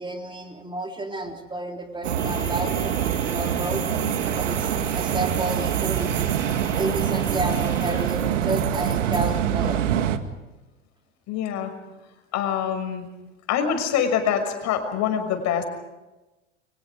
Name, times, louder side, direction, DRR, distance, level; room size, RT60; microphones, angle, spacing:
voice 1, 0.0-3.8 4.3-6.2 6.8-9.8, right 2 dB, 10° right, 2 dB, 3.7 m, -31 dB
sound 1, 2.0-10.2, right 10 dB, 70° right, 2.1 m, -25 dB
sound 2, 2.2-8.1, left 4 dB, 10° left, 2.0 m, -39 dB
voice 2, 11.3-11.7 12.3-13.1 13.5-15.6, left 8 dB, 45° left, 6 dB, 6.3 m, -25 dB
30.0 x 25.0 x 5.1 m, 1.1 s
hypercardioid pair, 85°, 38 cm